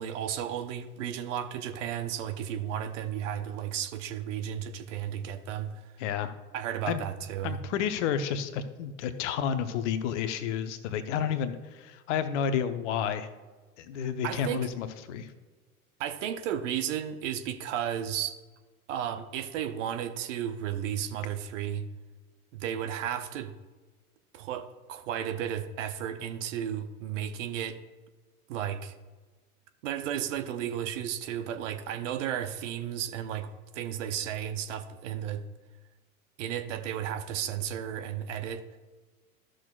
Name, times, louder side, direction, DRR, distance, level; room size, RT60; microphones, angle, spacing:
voice 1, 0.0-5.9 6.5-7.6 13.9-14.7 16.0-18.4 18.9-21.9 22.5-23.5 24.3-27.8 28.5-28.9 29.8-35.4 36.4-38.6, right 10 dB, 55° right, 9 dB, 0.8 m, -34 dB
voice 2, 6.0-6.3 6.9-7.0 7.4-13.3 13.8-15.3, left 8 dB, 55° left, 10 dB, 0.9 m, -31 dB
13.0 x 6.3 x 2.4 m, 1.3 s
figure-of-eight pair, 85°, 44 cm